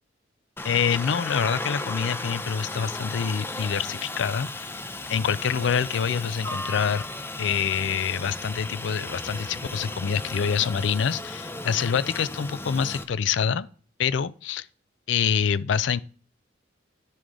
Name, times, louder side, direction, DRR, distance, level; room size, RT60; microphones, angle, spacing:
voice 1, 0.6-4.8 5.1-7.0 7.4-13.7 14.0-14.7 15.1-16.0, left 7 dB, 75° left, 0.4 m, -26 dB
Aircraft, 0.6-13.0, left 2 dB, 10° left, 0.5 m, -35 dB
10.5 x 3.8 x 4.7 m
head